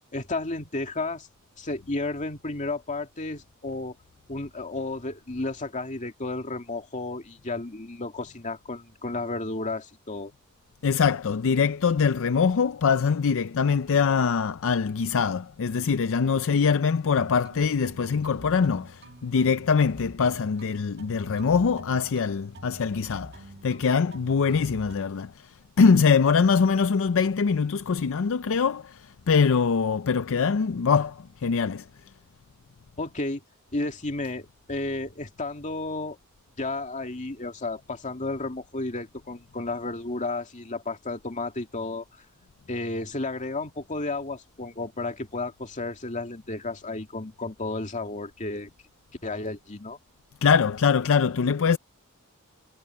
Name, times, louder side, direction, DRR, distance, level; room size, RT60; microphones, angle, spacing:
voice 1, 0.1-1.3 1.6-4.0 4.3-10.3 33.0-33.4 33.7-36.2 36.6-42.0 42.7-48.7 49.2-50.0, left 2 dB, 35° left, 2.4 m, -32 dB
voice 2, 10.8-31.9 50.4-51.8, left 5 dB, 60° left, 0.5 m, -23 dB
sound 1, 17.2-25.0, right 1 dB, 50° right, 2.0 m, -46 dB
head